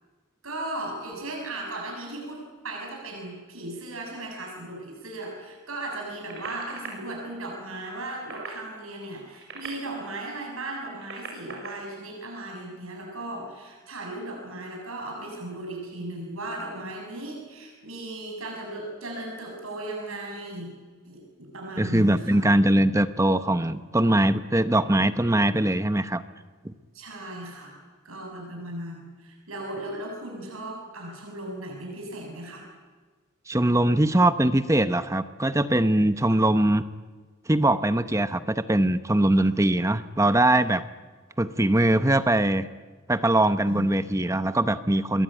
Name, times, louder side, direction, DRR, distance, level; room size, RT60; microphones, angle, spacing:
voice 1, 0.4-2.4 2.6-20.7 21.0-22.4 26.9-27.8 28.0-32.6 36.3-36.4 39.4-39.5 43.7-43.9, right 1 dB, 90° right, 0 dB, 7.3 m, -36 dB
sound 1, 6.2-6.9 8.0-8.6 9.2-10.2 10.8-11.7 12.9-13.0, right 4 dB, 55° right, 6.9 m, -41 dB
voice 2, 21.8-26.2 26.6-26.7 33.5-36.8 37.5-40.9 41.4-42.7 43.1-45.2, right 1 dB, 15° right, 11 dB, 0.9 m, -22 dB
28.0 x 22.5 x 9.1 m, 1.4 s
head